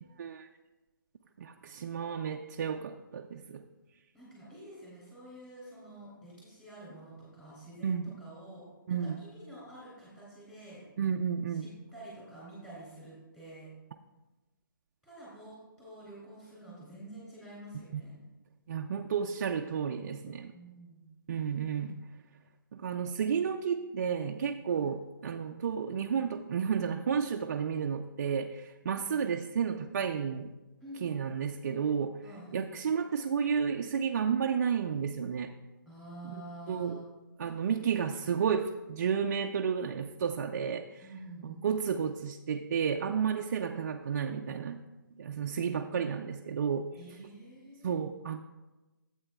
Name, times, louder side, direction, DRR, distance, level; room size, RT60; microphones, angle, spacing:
voice 1, 1.4-3.6 7.8-8.1 8.9-9.1 11.0-11.7 17.9-18.0 18.7-20.5 21.3-22.0 22.7-30.5 31.0-32.2 32.5-35.5 36.2-36.3 36.7-37.0 37.4-41.0 41.4-44.8 45.2-46.9 47.8-48.4, right 7 dB, 45° right, 3 dB, 0.4 m, -32 dB
voice 2, 4.1-10.8 11.6-13.7 15.0-18.2 20.5-21.1 24.7-24.9 30.8-31.1 32.2-32.7 35.8-37.1 41.0-41.7 47.0-48.0, right 1 dB, 10° left, -8 dB, 2.9 m, -49 dB
12.0 x 8.0 x 2.3 m, 1.1 s
hypercardioid pair, 160°, 12 cm